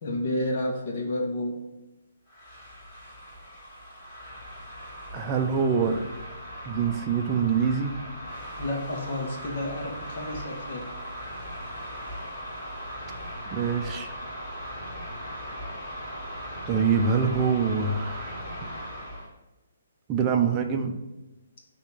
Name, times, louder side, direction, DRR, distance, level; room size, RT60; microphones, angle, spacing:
voice 1, 0.0-1.6 8.6-10.9, left 1 dB, 50° left, 0 dB, 1.4 m, -30 dB
sound 1, 2.3-19.3, equal, 30° left, 2.2 m, -39 dB
voice 2, 5.1-6.0 6.6-7.9 13.5-14.1 16.7-18.4 20.1-20.9, right 6 dB, 20° right, 4 dB, 0.5 m, -25 dB
6.3 x 3.0 x 5.7 m, 1.0 s
hypercardioid pair, 160°, 0 cm